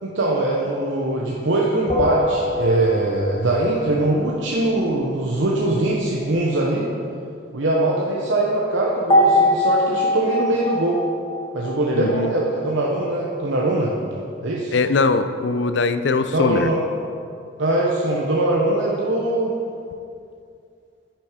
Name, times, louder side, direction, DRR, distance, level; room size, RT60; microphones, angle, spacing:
voice 1, 0.0-6.9 7.5-11.0 11.5-13.9 14.4-14.8 16.3-16.8 17.6-19.5, right 2 dB, 80° right, -4 dB, 0.9 m, -22 dB
sound 1, 1.9-3.4 9.1-12.4, left 1 dB, 25° left, 1.6 m, -22 dB
voice 2, 12.0-12.3 14.7-16.7, left 4 dB, 65° left, 10 dB, 0.5 m, -21 dB
10.0 x 6.0 x 5.0 m, 2.4 s
head